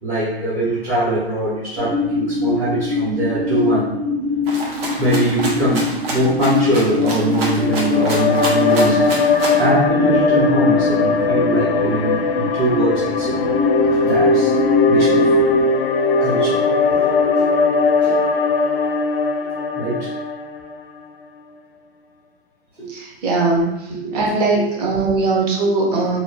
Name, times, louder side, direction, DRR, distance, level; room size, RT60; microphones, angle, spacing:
voice 1, 0.0-3.9 5.0-9.2 9.6-13.6 13.9-14.5 14.9-15.5 16.2-16.6 17.0-17.5 18.0-18.2 19.7-20.1 22.8-22.9 23.9-24.8 25.8-26.2, right 2 dB, 5° right, -12 dB, 0.3 m, -22 dB
sound 1, 1.8-15.6, left 4 dB, 85° right, 1.4 m, -23 dB
Rattle (instrument), 4.5-9.7, right 2 dB, 65° right, 0.9 m, -28 dB
sound 2, 7.5-20.9, left 3 dB, 60° left, 0.4 m, -19 dB
voice 2, 22.9-23.7 24.1-26.2, right 3 dB, 40° right, -1 dB, 0.7 m, -19 dB
2.9 x 2.1 x 2.7 m, 0.90 s
hypercardioid pair, 130°, 32 cm